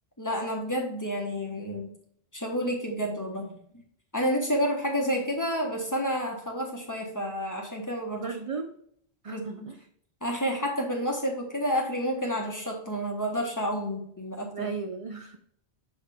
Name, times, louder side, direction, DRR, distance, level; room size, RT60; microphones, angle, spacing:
voice 1, 0.2-1.9 2.3-3.5 4.1-8.4 9.3-9.4 10.2-14.7, equal, 15° left, 0 dB, 1.4 m, -30 dB
voice 2, 8.1-8.8 9.2-9.8 14.5-15.4, right 5 dB, 45° right, 5 dB, 0.4 m, -36 dB
7.1 x 4.4 x 3.5 m, 0.66 s
omnidirectional pair, 1.1 m